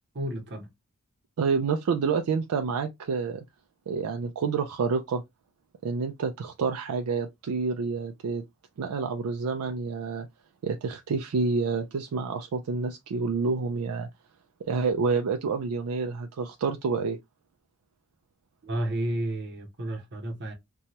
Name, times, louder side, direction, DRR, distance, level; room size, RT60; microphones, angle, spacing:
voice 1, 0.1-0.7 18.6-20.5, right 1 dB, 50° right, 0.8 m, -31 dB
voice 2, 1.4-3.4 3.9-5.2 5.8-8.4 8.8-10.3 10.6-14.1 14.7-17.2, right 4 dB, 80° right, 0.4 m, -28 dB
2.7 x 2.3 x 2.9 m
head